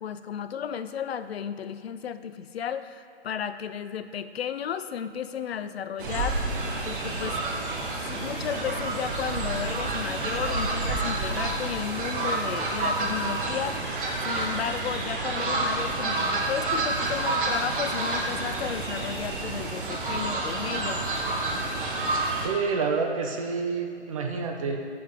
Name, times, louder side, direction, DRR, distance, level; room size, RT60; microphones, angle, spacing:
voice 1, 0.0-6.4 6.8-7.4 7.8-13.9 14.2-21.0, left 8 dB, 65° left, 12 dB, 0.5 m, -34 dB
Fowl, 6.0-22.5, right 2 dB, 50° right, 1.1 m, -29 dB
voice 2, 22.4-24.8, right 5 dB, 30° right, 3 dB, 0.6 m, -28 dB
7.0 x 4.7 x 5.1 m, 2.3 s
figure-of-eight pair, 145°, 34 cm